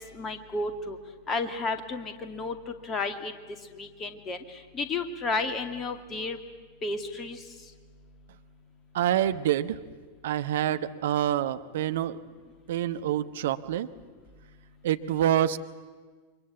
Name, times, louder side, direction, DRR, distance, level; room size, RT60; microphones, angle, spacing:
voice 1, 0.1-1.0 1.3-2.6 2.8-3.3 3.8-4.4 4.7-6.4 6.8-7.4, left 3 dB, 25° left, 7 dB, 2.4 m, -32 dB
voice 2, 8.9-9.8 10.2-12.2 12.7-13.9 14.8-15.6, right 11 dB, 55° right, 10 dB, 1.0 m, -26 dB
29.0 x 24.0 x 8.3 m, 1.5 s
figure-of-eight pair, 90°, 0 cm